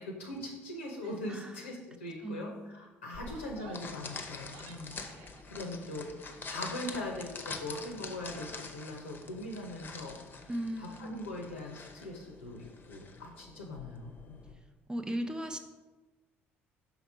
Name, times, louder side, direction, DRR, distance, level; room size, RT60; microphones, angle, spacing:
voice 1, 0.0-5.0 5.5-6.1 6.5-10.5 10.8-14.4, left 1 dB, 85° left, 0 dB, 0.7 m, -41 dB
Female speech woman speaking / Yell, 1.0-1.3 1.6-1.8 2.0-2.4 3.0-5.5, right 6 dB, 65° right, 0.5 m, -55 dB
voice 2, 1.3-1.7 2.2-2.9 10.5-11.3 14.9-15.6, right 1 dB, 10° right, 6 dB, 0.5 m, -37 dB
sound 1, 3.1-14.5, left 4 dB, 30° left, 0.7 m, -46 dB
5.7 x 3.6 x 4.7 m, 1.2 s
figure-of-eight pair, 55°, 6 cm